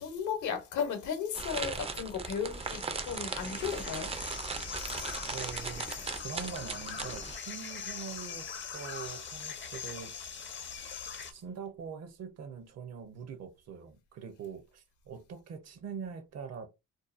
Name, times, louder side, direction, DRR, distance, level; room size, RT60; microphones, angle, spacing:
voice 1, 0.0-4.1 4.8-5.0, left 7 dB, 75° left, 0.8 m, -35 dB
sound 1, 1.3-7.4, right 4 dB, 20° right, 0.4 m, -38 dB
sound 2, 2.5-11.3, left 7 dB, 40° left, 0.5 m, -42 dB
voice 2, 5.3-5.9 6.2-10.1 11.3-16.7, right 6 dB, 60° right, 0.7 m, -43 dB
2.6 x 2.1 x 2.4 m
cardioid pair, 90°, 30 cm